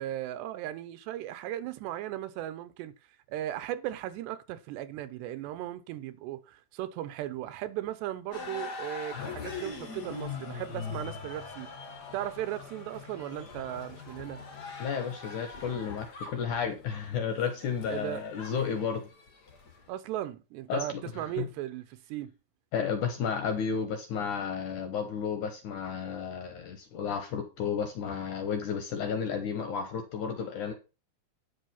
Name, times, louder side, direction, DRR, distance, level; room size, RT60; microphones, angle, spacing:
voice 1, 0.0-2.9 3.3-11.7 12.1-14.4 17.9-18.2 19.9-22.3, right 13 dB, 85° right, 3.1 m, -37 dB
sound 1, 8.3-19.9, left 4 dB, 45° left, 1.3 m, -42 dB
voice 2, 14.8-19.0 20.7-21.0 21.4-21.5 22.7-30.7, left 7 dB, 65° left, 2.1 m, -32 dB
10.5 x 6.3 x 5.7 m
omnidirectional pair, 4.9 m